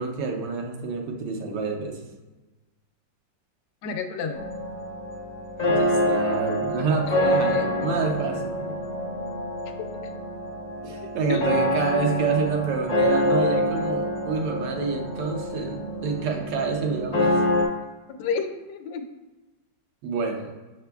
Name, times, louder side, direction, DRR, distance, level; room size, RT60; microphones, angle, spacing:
voice 1, 0.0-2.0 5.6-8.8 10.8-17.4 20.0-20.5, right 5 dB, 90° right, 2 dB, 1.4 m, -28 dB
voice 2, 3.8-4.4 7.1-7.7 9.6-9.9 11.3-11.4 18.2-19.0, left 5 dB, 85° left, 6 dB, 1.2 m, -30 dB
sound 1, 4.3-17.7, left 1 dB, 45° left, 0.5 m, -26 dB
6.6 x 3.6 x 2.2 m, 1.2 s
omnidirectional pair, 1.9 m